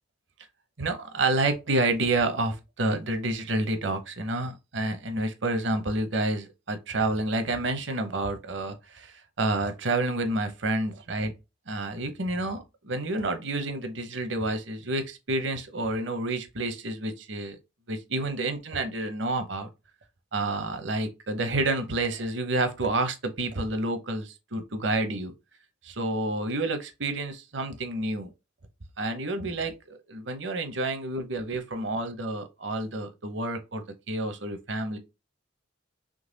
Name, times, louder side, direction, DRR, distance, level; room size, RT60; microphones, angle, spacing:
voice 1, 0.8-11.3 11.7-17.6 17.9-19.7 20.3-25.3 25.8-28.3 29.0-35.0, right 2 dB, 65° right, 0.9 m, -29 dB
3.9 x 3.3 x 3.9 m
head